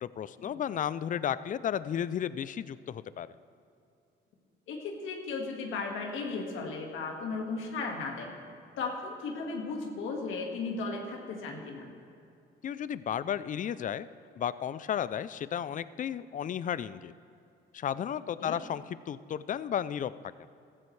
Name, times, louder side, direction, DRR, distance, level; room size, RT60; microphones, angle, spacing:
voice 1, 0.0-3.3 12.6-14.1 14.4-17.1 17.7-20.1, left 9 dB, 40° left, 16 dB, 0.4 m, -33 dB
voice 2, 4.7-8.3 8.8-11.9 18.4-18.5, left 4 dB, 85° left, 1 dB, 1.8 m, -35 dB
15.0 x 14.0 x 3.3 m, 2.6 s
cardioid pair, 90°, 20 cm